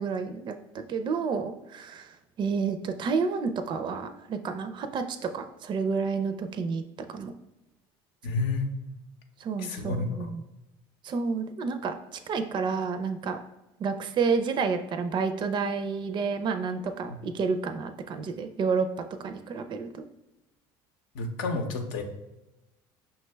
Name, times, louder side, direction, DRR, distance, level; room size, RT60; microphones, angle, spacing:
voice 1, 0.0-6.8 7.1-7.3 9.4-10.4 11.0-13.4 13.8-18.9 19.2-20.0, right 5 dB, 40° right, 8 dB, 0.4 m, -30 dB
voice 2, 8.2-8.7 9.6-10.3 17.1-17.2 21.1-22.0, left 3 dB, 80° left, 4 dB, 0.6 m, -30 dB
5.6 x 2.2 x 3.2 m, 0.97 s
supercardioid pair, 90°, 12 cm